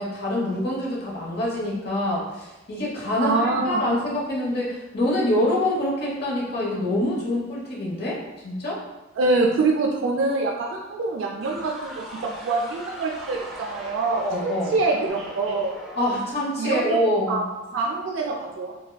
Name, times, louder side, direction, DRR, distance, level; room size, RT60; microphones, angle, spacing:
voice 1, 0.0-8.8 14.2-14.8 15.9-17.5, left 1 dB, 55° left, -5 dB, 0.8 m, -25 dB
voice 2, 3.2-3.9 9.2-15.7 16.6-17.0 17.3-17.4 17.7-18.8, right 3 dB, 75° right, 0 dB, 0.3 m, -25 dB
sound 1, 11.4-17.2, right 1 dB, ahead, 0.4 m, -41 dB
3.3 x 2.1 x 2.2 m, 1.0 s
head